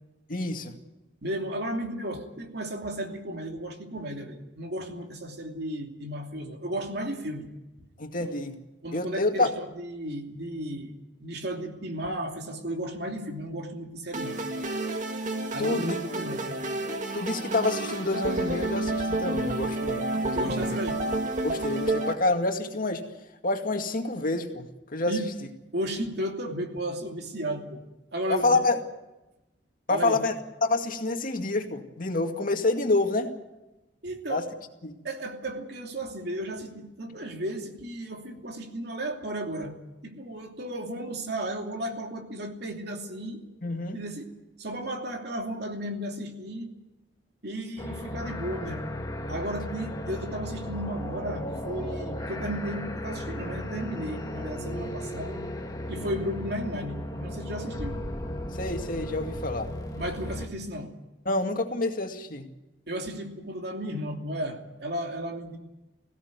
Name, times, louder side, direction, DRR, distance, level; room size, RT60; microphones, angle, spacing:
voice 1, 0.3-0.7 8.0-8.6 8.9-9.5 15.6-16.0 17.1-20.8 21.4-23.0 23.4-25.2 28.3-28.8 29.9-30.3 30.6-33.3 34.3-34.4 34.8-34.9 43.6-44.0 58.5-59.7 61.3-62.5, left 2 dB, 50° left, 4 dB, 2.2 m, -28 dB
voice 2, 1.2-7.5 8.2-8.3 8.8-10.9 11.2-14.4 15.5-16.6 20.3-21.0 25.1-25.2 25.7-27.8 28.1-28.6 29.9-30.2 34.0-34.5 35.0-39.7 40.0-43.4 43.9-44.2 44.6-46.7 47.4-48.9 49.3-55.4 55.9-58.0 60.0-60.9 62.9-65.6, right 1 dB, 65° right, 3 dB, 2.8 m, -34 dB
sound 1, 14.1-22.1, right 2 dB, 45° right, 2.0 m, -30 dB
sound 2, 47.8-60.5, left 1 dB, 20° left, 1.9 m, -35 dB
19.5 x 16.5 x 9.6 m, 0.99 s
head